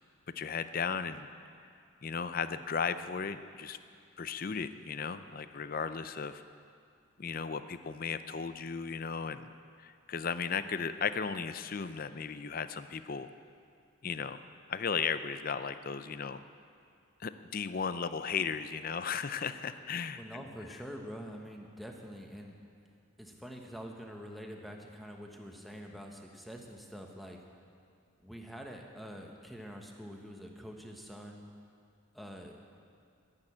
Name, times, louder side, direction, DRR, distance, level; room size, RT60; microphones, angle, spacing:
voice 1, 0.4-1.3 2.0-3.8 4.2-6.4 7.2-9.5 9.8-13.3 14.0-14.4 14.7-16.4 17.2-20.4 20.7-20.8, left 6 dB, 40° left, 12 dB, 0.5 m, -35 dB
voice 2, 20.2-22.6 23.2-27.4 28.2-31.4 32.1-32.6, equal, ahead, 1 dB, 1.1 m, -46 dB
11.5 x 10.5 x 8.6 m, 2.3 s
head